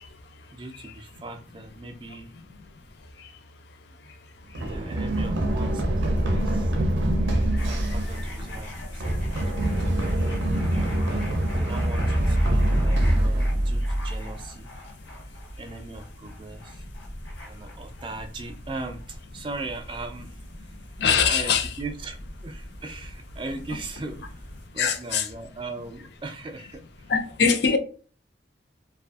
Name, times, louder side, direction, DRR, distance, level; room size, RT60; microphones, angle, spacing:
voice 1, 0.5-2.3 4.0-4.1 4.5-6.7 7.6-9.5 9.8-9.9 10.7-14.7 15.6-16.8 17.4-20.8 21.3-22.2 22.4-24.5 24.7-27.1, right 3 dB, 25° right, 0.3 m, -39 dB
Run, 4.5-14.3, right 1 dB, 80° right, 0.5 m, -24 dB
sound 1, 7.6-24.7, left 1 dB, 85° left, 0.8 m, -41 dB
voice 2, 21.0-21.7 24.8-25.3 27.1-27.8, left 6 dB, 60° left, 0.4 m, -22 dB
2.5 x 2.3 x 2.3 m
head